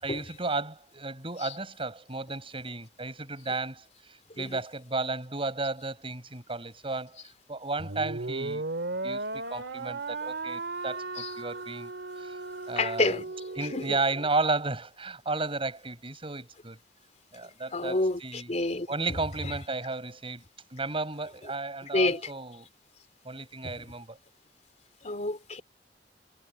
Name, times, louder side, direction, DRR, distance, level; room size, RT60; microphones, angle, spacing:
voice 1, 0.0-7.2 7.5-8.6 9.0-11.9 12.2-12.4 12.7-13.2 13.6-16.8 17.3-18.5 18.9-20.4 20.7-22.7 23.3-24.2, right 3 dB, 30° right, 6.8 m, -33 dB
sound 1, 7.8-14.3, right 3 dB, 85° right, 2.4 m, -36 dB
voice 2, 12.8-13.2 13.7-14.0 17.7-18.9 21.8-22.3 23.6-23.7 25.0-25.6, left 2 dB, 40° left, 3.1 m, -29 dB
head